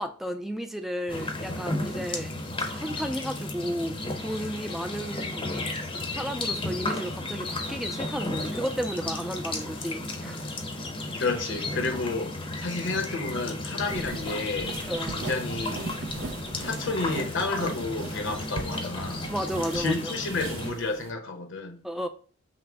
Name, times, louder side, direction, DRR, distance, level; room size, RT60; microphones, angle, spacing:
voice 1, 0.0-2.3 2.7-5.5 6.1-10.4 14.9-15.2 19.3-20.1 21.8-22.1, equal, ahead, 0.3 m, -33 dB
sound 1, 1.1-20.7, left 2 dB, 25° left, 0.7 m, -34 dB
voice 2, 11.2-14.8 15.1-16.0 16.6-19.3 19.7-21.8, left 3 dB, 65° left, 0.9 m, -31 dB
sound 2, 13.9-21.1, right 3 dB, 70° right, 0.6 m, -39 dB
5.8 x 2.1 x 3.4 m
head